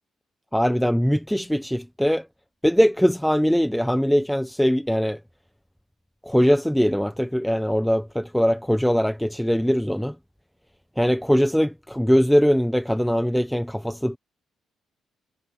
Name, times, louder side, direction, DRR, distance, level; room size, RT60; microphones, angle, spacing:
voice 1, 0.5-2.3 2.6-5.2 6.2-10.1 11.0-14.2, equal, ahead, 0.8 m, -21 dB
cardioid pair, 90°, 0 cm